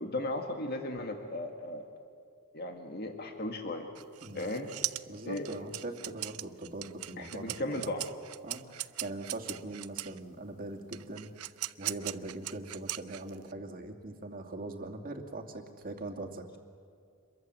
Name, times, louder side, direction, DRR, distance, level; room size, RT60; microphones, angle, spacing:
voice 1, 0.0-1.8 2.5-3.9 4.3-4.7 5.3-5.5 7.2-8.0, left 1 dB, 45° left, 4 dB, 1.9 m, -36 dB
sound 1, 3.9-10.2 10.9-13.5, right 15 dB, 90° right, 0.6 m, -39 dB
voice 2, 5.1-7.9 8.4-11.3 11.8-16.4, right 2 dB, 40° right, 4 dB, 2.5 m, -41 dB
27.5 x 22.5 x 7.7 m, 2.3 s
head